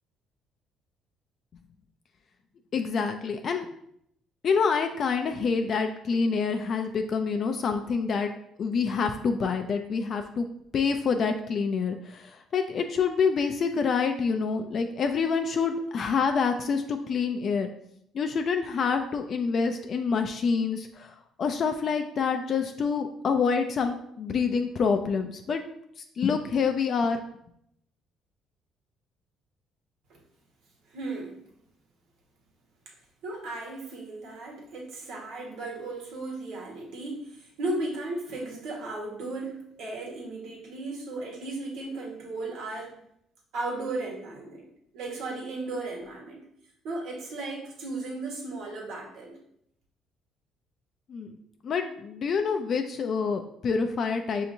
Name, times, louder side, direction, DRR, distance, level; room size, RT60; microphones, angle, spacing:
voice 1, 2.7-3.7 4.4-8.3 8.6-10.5 10.7-17.7 18.1-25.6 26.2-27.2 51.1-51.4 51.6-54.4, left 5 dB, 50° left, 6 dB, 0.4 m, -27 dB
voice 2, 30.9-31.4 33.2-43.0 43.5-44.6 44.9-46.4 46.8-49.4, right 2 dB, 75° right, -1 dB, 1.3 m, -35 dB
5.6 x 2.8 x 2.6 m, 0.73 s
supercardioid pair, 80°, 0 cm